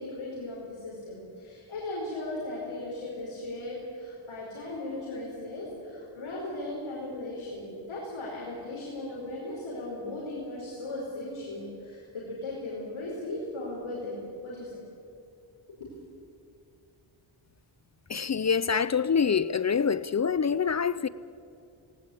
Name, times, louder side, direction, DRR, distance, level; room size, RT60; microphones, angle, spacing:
voice 1, 0.0-14.7, left 2 dB, 75° left, 5.0 m, -37 dB
voice 2, 18.1-21.1, left 6 dB, 35° left, 0.5 m, -26 dB
19.0 x 18.5 x 8.6 m
wide cardioid pair, 90°, 48 cm